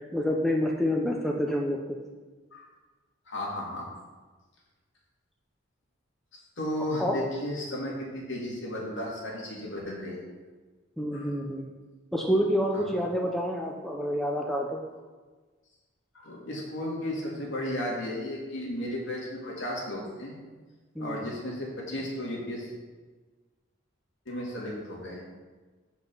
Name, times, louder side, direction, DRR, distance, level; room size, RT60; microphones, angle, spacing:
voice 1, 0.0-1.8 7.0-7.2 11.0-11.6 12.1-14.8 21.0-21.2, equal, ahead, -1 dB, 0.6 m, -28 dB
voice 2, 3.3-3.9 6.6-10.2 11.1-11.3 12.7-12.9 16.1-20.4 21.0-22.7 24.3-25.2, left 1 dB, 65° left, -3 dB, 2.4 m, -34 dB
7.5 x 5.9 x 5.4 m, 1.3 s
head